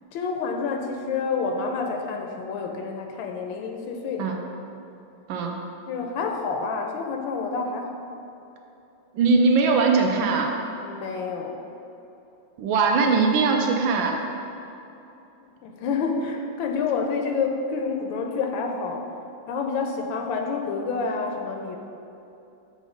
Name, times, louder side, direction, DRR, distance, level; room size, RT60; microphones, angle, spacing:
voice 1, 0.1-4.4 5.9-8.1 10.8-11.7 15.4-19.1 19.5-21.8, left 4 dB, 80° left, 3 dB, 1.3 m, -28 dB
voice 2, 9.1-10.5 12.6-14.2, right 4 dB, 80° right, 2 dB, 1.3 m, -21 dB
7.4 x 2.6 x 4.9 m, 2.9 s
omnidirectional pair, 2.2 m